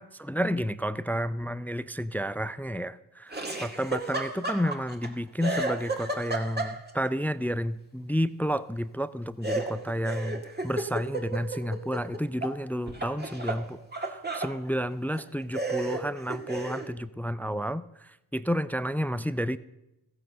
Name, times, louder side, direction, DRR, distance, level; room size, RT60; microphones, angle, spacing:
voice 1, 0.0-19.6, equal, 5° left, 16 dB, 0.4 m, -31 dB
Laughter, 3.3-5.1 5.4-7.1 9.4-12.6 12.9-14.5 15.1-15.2 15.5-16.9, right 2 dB, 20° right, 1.9 m, -33 dB
14.5 x 7.9 x 6.5 m, 0.92 s
supercardioid pair, 45°, 47 cm